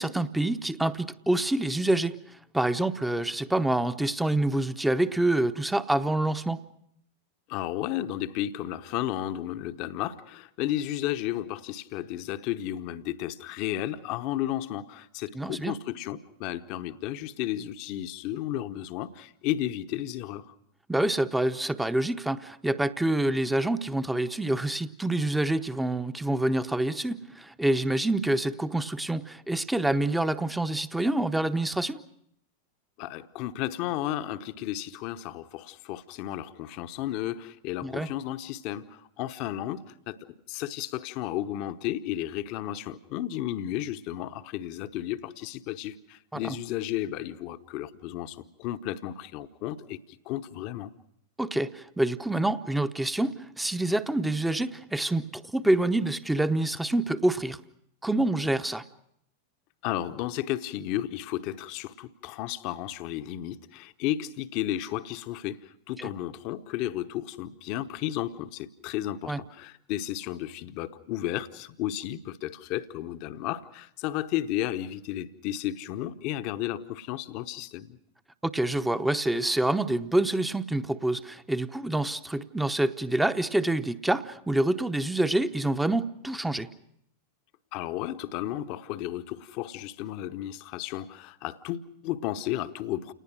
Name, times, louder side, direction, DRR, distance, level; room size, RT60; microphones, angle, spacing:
voice 1, 0.0-6.6 15.3-15.7 20.9-32.0 37.8-38.1 46.3-46.5 51.4-57.6 58.0-58.8 66.0-66.1 69.3-69.4 78.4-86.7, right 1 dB, 5° right, 0.9 m, -27 dB
voice 2, 7.5-20.5 33.0-50.9 59.8-78.0 87.7-93.1, left 13 dB, 45° left, 0.9 m, -33 dB
29.0 x 19.5 x 6.2 m
figure-of-eight pair, 90°, 0 cm